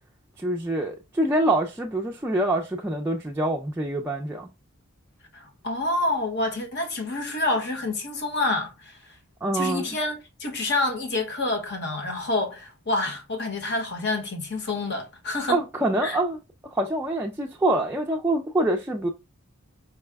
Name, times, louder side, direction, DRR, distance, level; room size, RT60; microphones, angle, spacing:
voice 1, 0.4-4.5 9.4-9.9 15.5-16.4 16.7-19.1, right 1 dB, 10° right, 0.4 m, -25 dB
voice 2, 5.3-8.9 9.5-15.6 16.0-16.2, left 2 dB, 55° left, 1.0 m, -28 dB
4.7 x 2.2 x 3.3 m
head